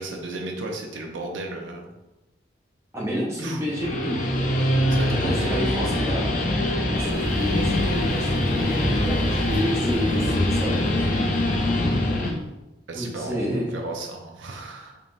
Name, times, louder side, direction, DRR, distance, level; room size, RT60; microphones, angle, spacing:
voice 1, 0.0-1.9 3.4-3.6 4.9-5.6 12.9-15.0, right 2 dB, 85° right, 2 dB, 0.6 m, -34 dB
voice 2, 2.9-4.2 5.0-6.3 6.9-11.3 12.9-13.7, equal, 15° right, -4 dB, 0.6 m, -30 dB
Guitar, 3.6-12.4, left 1 dB, 45° left, 0.5 m, -23 dB
sound 1, 6.9-12.5, right 1 dB, 50° right, 1.2 m, -42 dB
4.0 x 3.7 x 2.5 m, 1.0 s
head